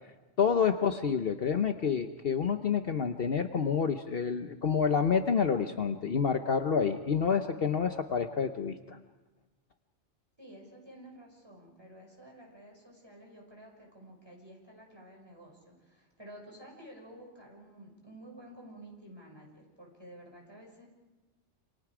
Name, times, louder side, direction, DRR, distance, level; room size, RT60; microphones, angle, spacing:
voice 1, 0.4-9.0, left 6 dB, 55° left, 7 dB, 1.1 m, -28 dB
voice 2, 10.4-20.9, right 1 dB, 20° right, -1 dB, 6.3 m, -51 dB
28.5 x 27.0 x 5.0 m, 1.2 s
omnidirectional pair, 1.2 m